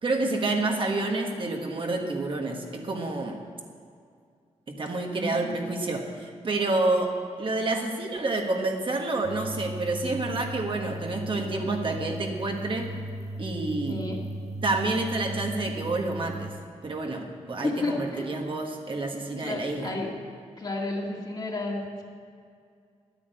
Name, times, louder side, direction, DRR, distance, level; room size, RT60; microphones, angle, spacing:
voice 1, 0.0-3.4 4.7-12.9 13.4-14.0 14.6-16.5 16.8-19.9, right 2 dB, 45° right, 2 dB, 1.4 m, -29 dB
voice 2, 5.1-5.7 13.9-14.3 17.6-18.3 19.4-20.1 20.6-22.0, left 2 dB, 35° left, -1 dB, 2.0 m, -32 dB
sound 1, 9.2-16.5, right 1 dB, 65° right, 1.0 m, -37 dB
11.0 x 9.8 x 7.9 m, 2.3 s
wide cardioid pair, 135°, 12 cm